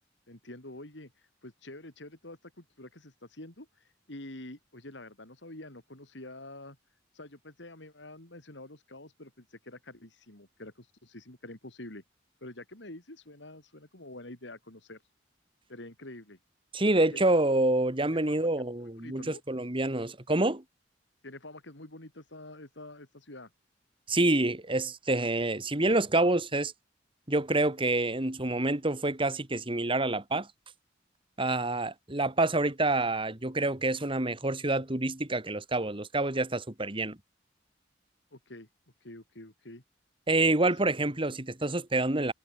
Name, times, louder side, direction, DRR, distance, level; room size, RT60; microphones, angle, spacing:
voice 1, 0.3-1.1 1.4-3.7 4.1-6.8 7.1-12.0 12.4-15.0 15.7-16.4 17.1-17.2 18.3-18.4 19.0-19.4 21.2-23.5 38.3-38.7 39.0-39.8 40.4-40.5, left 1 dB, 65° left, 4.1 m, -47 dB
voice 2, 16.7-20.6 24.1-26.7 27.3-30.5 31.4-37.2 40.3-42.3, right 2 dB, 30° right, 2.1 m, -27 dB
head